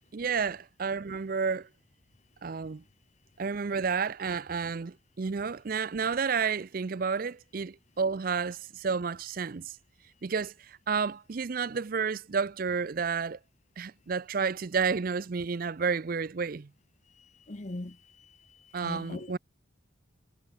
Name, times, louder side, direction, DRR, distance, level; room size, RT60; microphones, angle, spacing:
voice 1, 0.1-1.7 2.4-2.8 3.4-9.7 10.2-13.4 13.8-16.7 18.7-19.4, right 5 dB, 45° right, 0.5 m, -31 dB
voice 2, 17.1-19.4, left 1 dB, 35° left, 0.9 m, -42 dB
head